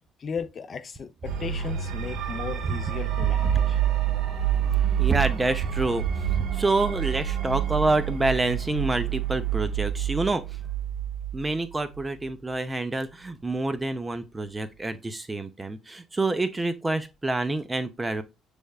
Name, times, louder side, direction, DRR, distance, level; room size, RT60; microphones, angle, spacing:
voice 1, 0.2-1.1 1.4-4.6, left 6 dB, 45° left, 0.6 m, -36 dB
sound 1, 1.2-12.3, right 10 dB, 75° right, 0.8 m, -28 dB
voice 2, 5.0-10.6 11.3-18.2, right 2 dB, 20° right, 0.6 m, -27 dB
6.2 x 3.4 x 2.3 m
supercardioid pair, 70°, 0 cm